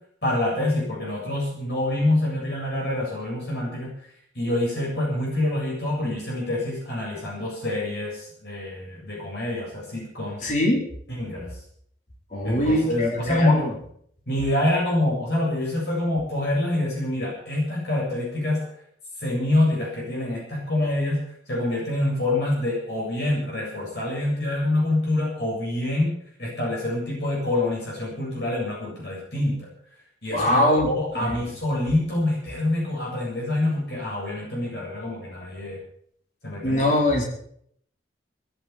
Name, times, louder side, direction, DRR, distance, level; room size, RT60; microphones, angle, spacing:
voice 1, 0.2-3.9 4.3-10.4 11.2-11.6 12.4-13.7 14.3-18.7 19.2-21.2 21.5-26.1 26.4-29.7 30.2-35.8 36.4-36.9, left 1 dB, 60° left, -3 dB, 7.8 m, -26 dB
voice 2, 10.4-10.8 12.3-13.7 30.3-30.9 31.2-31.3 36.6-37.2, left 1 dB, 40° left, 0 dB, 4.5 m, -22 dB
20.0 x 9.7 x 7.2 m, 0.64 s
head